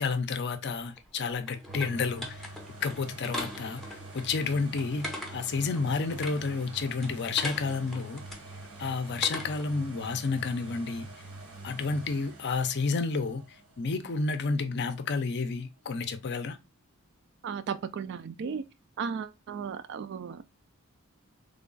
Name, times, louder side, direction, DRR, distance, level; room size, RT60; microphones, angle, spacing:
voice 1, 0.0-2.5 2.8-8.2 8.8-11.1 11.6-16.6, left 4 dB, 50° left, 0.5 m, -30 dB
sound 1, 1.0-9.8, left 1 dB, ahead, 0.6 m, -42 dB
sound 2, 1.7-15.3 15.9-16.0, right 2 dB, 70° right, 1.2 m, -46 dB
voice 2, 17.4-18.6 19.0-20.5, right 6 dB, 50° right, 0.3 m, -35 dB
3.3 x 2.3 x 3.8 m
head